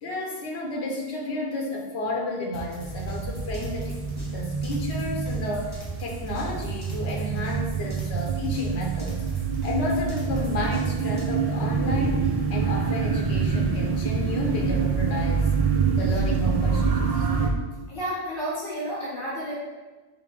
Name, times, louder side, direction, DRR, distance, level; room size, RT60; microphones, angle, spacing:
voice 1, 0.0-4.0 4.3-9.2 9.6-12.2 12.5-15.5 16.0-17.3, left 1 dB, 85° left, 0 dB, 1.1 m, -31 dB
sound 1, 2.5-11.3, right 1 dB, 20° left, 1.5 m, -42 dB
sound 2, 2.8-17.5, right 5 dB, 40° right, 0.6 m, -26 dB
voice 2, 17.9-19.5, equal, 55° left, -8 dB, 1.9 m, -31 dB
5.5 x 3.7 x 4.8 m, 1.2 s
omnidirectional pair, 1.1 m